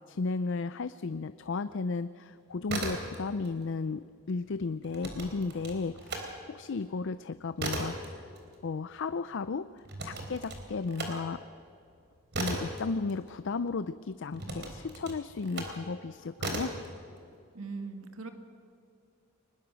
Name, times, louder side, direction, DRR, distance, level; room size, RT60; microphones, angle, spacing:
voice 1, 0.1-8.2 8.6-11.4 12.4-16.8, left 4 dB, 60° left, 13 dB, 0.5 m, -34 dB
sound 1, 2.5-3.5 3.8-6.3 6.7-13.7 14.3-15.8 16.4-16.9, right 2 dB, 50° right, 3.6 m, -37 dB
voice 2, 17.5-18.3, right 4 dB, 75° right, 6 dB, 2.0 m, -40 dB
23.5 x 20.5 x 6.3 m, 2.4 s
head